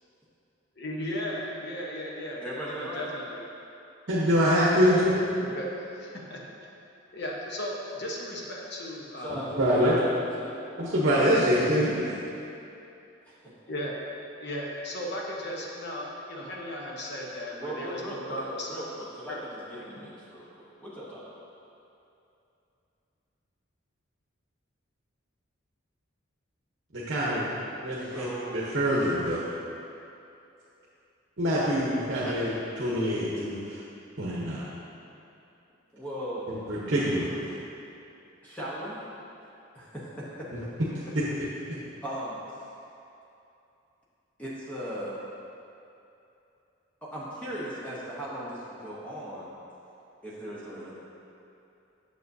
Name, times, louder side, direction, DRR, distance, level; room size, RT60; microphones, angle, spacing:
voice 1, 0.8-3.4 4.8-5.0 5.4-5.7 5.9-6.4 7.1-9.4 13.7-14.0 14.4-18.8 19.3-19.4 19.7-19.9, left 1 dB, 55° left, -2 dB, 1.0 m, -36 dB
voice 2, 2.4-3.1 9.2-10.6 13.3-13.5 17.6-18.4 18.7-21.2 28.0-28.6 32.1-32.4 35.9-36.5 38.4-39.0 39.7-40.7 42.0-42.6 44.4-45.2 47.0-49.5 50.2-51.0, equal, 5° left, -8 dB, 1.0 m, -38 dB
voice 3, 4.1-5.2 9.3-10.0 10.8-12.1 26.9-27.4 27.8-28.3 28.5-29.4 31.4-32.5 32.8-33.8 34.2-34.7 36.7-37.4, equal, 60° right, -8 dB, 1.0 m, -25 dB
9.3 x 6.7 x 2.7 m, 2.7 s
head